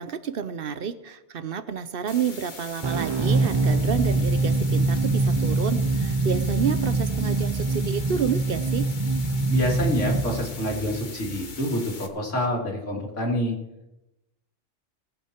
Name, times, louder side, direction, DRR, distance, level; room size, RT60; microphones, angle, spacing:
voice 1, 0.0-8.9, right 7 dB, 55° right, 12 dB, 0.8 m, -29 dB
sound 1, 2.1-12.1, left 4 dB, 45° left, 1.3 m, -41 dB
sound 2, 2.8-11.5, right 3 dB, 40° right, 0.4 m, -24 dB
voice 2, 9.5-13.5, equal, 90° left, -1 dB, 3.0 m, -27 dB
20.0 x 8.1 x 4.4 m, 0.92 s
omnidirectional pair, 1.2 m